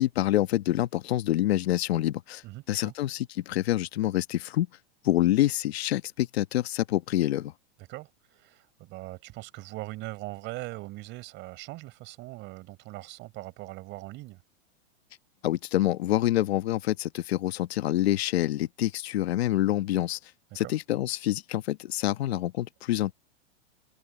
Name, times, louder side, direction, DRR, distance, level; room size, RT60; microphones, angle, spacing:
voice 1, 0.0-2.4 2.7-4.7 5.0-7.5 15.4-20.2 20.5-23.1, left 14 dB, 70° left, 1.2 m, -26 dB
voice 2, 2.4-2.9 7.9-14.4 20.5-20.8, right 19 dB, 35° right, 5.1 m, -41 dB
open air
supercardioid pair, 150°, 32 cm